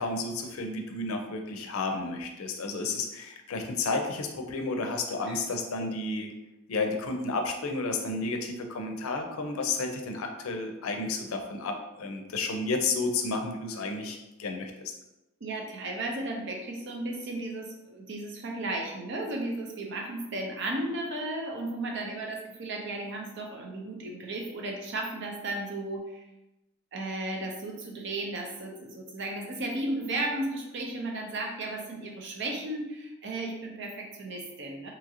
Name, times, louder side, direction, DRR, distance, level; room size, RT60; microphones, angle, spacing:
voice 1, 0.0-6.3 6.7-14.9, left 3 dB, 90° left, 4 dB, 0.5 m, -32 dB
voice 2, 15.4-26.2 26.9-34.9, right 2 dB, 60° right, 0 dB, 0.6 m, -34 dB
2.9 x 2.5 x 2.8 m, 0.96 s
head